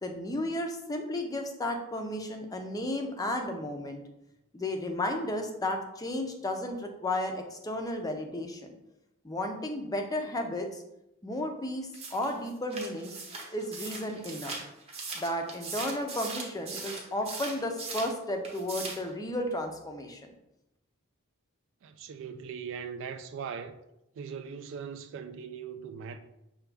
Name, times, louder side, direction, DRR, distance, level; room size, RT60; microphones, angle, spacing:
voice 1, 0.0-4.0 4.5-8.7 9.2-10.8 11.2-13.1 13.5-14.6 15.1-20.3, left 1 dB, 15° left, 0.5 m, -33 dB
sound 1, 11.9-18.2 18.4-19.1, right 3 dB, 30° right, 0.8 m, -40 dB
voice 2, 21.8-23.8 24.2-26.2, right 6 dB, 60° right, 0.3 m, -40 dB
5.9 x 2.3 x 3.3 m
head